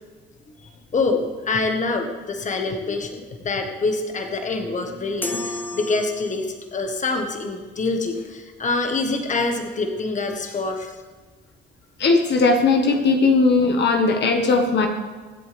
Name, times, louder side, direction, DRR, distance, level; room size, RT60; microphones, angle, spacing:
voice 1, 0.9-11.0, left 3 dB, 40° left, 4 dB, 1.5 m, -25 dB
sound 1, 5.2-6.7, left 2 dB, 10° left, 1.2 m, -32 dB
voice 2, 12.0-14.9, left 3 dB, 60° left, 4 dB, 1.5 m, -18 dB
23.5 x 7.9 x 3.5 m, 1.4 s
cardioid pair, 90°, 20 cm